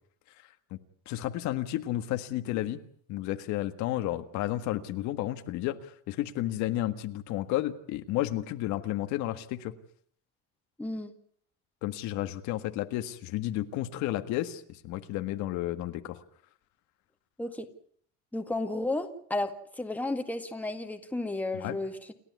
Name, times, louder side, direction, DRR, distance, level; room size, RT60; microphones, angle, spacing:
voice 1, 0.4-0.8 1.0-2.8 3.1-9.7 11.8-16.2 21.5-21.8, left 14 dB, 70° left, 8 dB, 1.7 m, -32 dB
voice 2, 10.8-11.1 17.4-17.7 18.3-22.1, left 2 dB, 5° left, 5 dB, 2.0 m, -33 dB
29.0 x 12.0 x 9.6 m, 0.63 s
cardioid pair, 140°, 30 cm